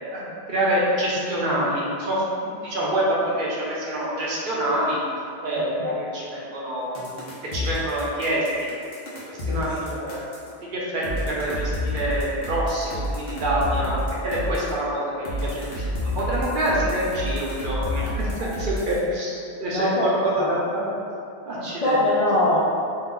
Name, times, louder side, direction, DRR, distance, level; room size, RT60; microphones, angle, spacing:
voice 1, 0.0-5.0 5.4-7.0 7.5-8.5 9.5-10.2 10.6-11.5 11.8-20.9 21.5-22.0, right 1 dB, 60° right, -6 dB, 0.7 m, -26 dB
sound 1, 6.9-10.5 11.0-14.7 15.2-19.0, left 1 dB, 70° left, 0.9 m, -29 dB
voice 2, 9.5-10.0 19.7-20.5 21.8-22.6, left 1 dB, 55° left, -8 dB, 0.4 m, -23 dB
2.7 x 2.1 x 3.6 m, 2.5 s
omnidirectional pair, 1.1 m